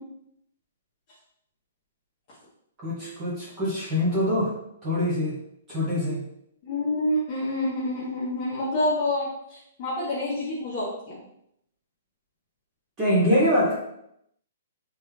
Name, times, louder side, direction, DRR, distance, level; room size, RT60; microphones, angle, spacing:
voice 1, 2.8-4.5 4.8-5.4 5.7-6.2 13.0-13.7, equal, 15° right, -7 dB, 0.8 m, -24 dB
voice 2, 6.6-11.2, left 1 dB, 25° left, -10 dB, 1.0 m, -28 dB
3.4 x 3.3 x 3.2 m, 0.76 s
hypercardioid pair, 175°, 0 cm